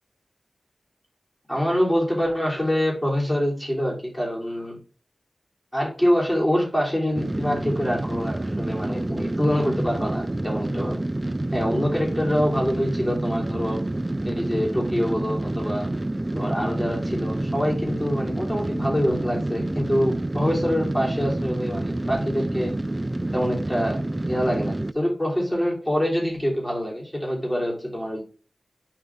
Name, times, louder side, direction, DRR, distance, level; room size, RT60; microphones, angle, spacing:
voice 1, 1.5-4.8 5.7-11.0 11.5-13.8 14.2-15.9 16.3-22.7 23.3-24.0 24.3-28.2, equal, 10° left, -3 dB, 3.3 m, -25 dB
sound 1, 7.2-24.9, right 1 dB, 20° right, 0.3 m, -28 dB
7.8 x 4.6 x 3.5 m, 0.38 s
wide cardioid pair, 90°, 0 cm